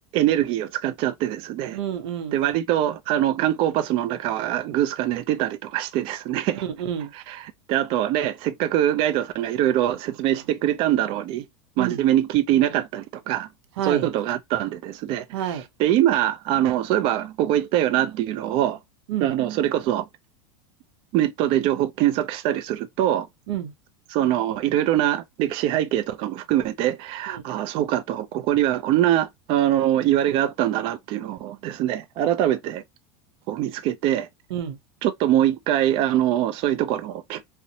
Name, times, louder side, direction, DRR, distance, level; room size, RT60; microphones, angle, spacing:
voice 1, 0.1-1.8 2.3-6.6 7.1-11.5 11.8-13.5 13.9-15.2 15.8-18.8 19.2-20.0 21.1-23.3 24.1-32.8 33.5-34.3 35.0-37.5, right 12 dB, 40° right, 0.4 m, -23 dB
voice 2, 1.7-2.4 6.5-7.1 11.8-12.0 13.8-14.1 15.3-15.6 19.1-19.3 23.5-23.7 27.3-27.4 34.5-34.8, right 10 dB, 80° right, 0.6 m, -29 dB
2.6 x 2.1 x 2.7 m
supercardioid pair, 145°, 14 cm